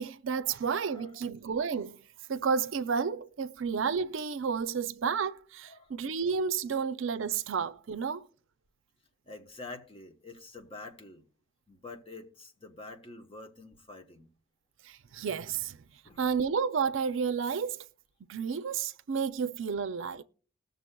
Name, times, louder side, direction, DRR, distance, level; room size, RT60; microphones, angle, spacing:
voice 1, 0.0-2.0 2.3-8.2 14.8-15.8 16.2-17.8 18.3-20.2, right 6 dB, 70° right, 0.5 m, -31 dB
voice 2, 0.9-1.2 5.7-5.9 9.3-11.2 11.7-14.3 16.0-16.3, left 3 dB, 25° left, 1.0 m, -47 dB
20.0 x 6.8 x 2.2 m
head